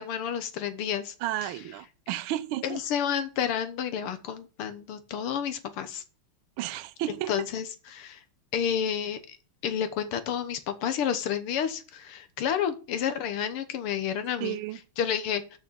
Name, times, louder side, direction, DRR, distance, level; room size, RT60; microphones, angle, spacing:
voice 1, 0.0-1.1 2.6-6.0 7.3-7.7 7.9-8.2 8.5-9.4 9.6-14.6 15.0-15.4, left 8 dB, 80° left, 2.0 m, -30 dB
voice 2, 1.2-2.8 6.6-7.5 14.4-14.8, right 14 dB, 75° right, 1.4 m, -32 dB
6.6 x 6.4 x 6.8 m
omnidirectional pair, 2.4 m